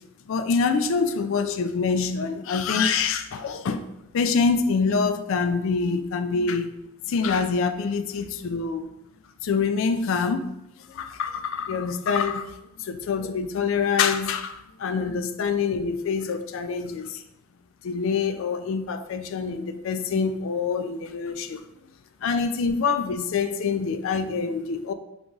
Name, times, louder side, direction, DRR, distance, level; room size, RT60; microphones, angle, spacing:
voice 1, 0.3-3.9 4.1-6.7 7.1-8.9 9.4-10.5 10.9-17.2 17.8-21.6 22.2-24.9, left 5 dB, 65° left, 0.4 m, -25 dB
3.8 x 3.0 x 3.6 m
head